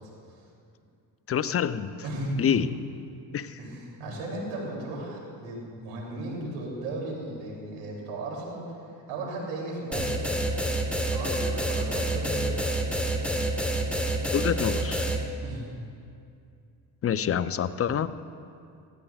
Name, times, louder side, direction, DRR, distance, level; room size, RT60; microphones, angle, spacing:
voice 1, 1.3-1.9 2.4-2.7 3.3-3.6 14.3-15.1 17.0-18.1, left 8 dB, 35° left, 13 dB, 0.5 m, -26 dB
voice 2, 2.0-2.5 3.6-8.6 9.1-10.4 11.1-12.5 15.4-15.6 17.3-17.4, right 2 dB, 90° right, -2 dB, 3.0 m, -35 dB
sound 1, 9.9-15.2, right 1 dB, 5° left, 1.4 m, -27 dB
18.0 x 14.5 x 2.4 m, 2.5 s
supercardioid pair, 75°, 44 cm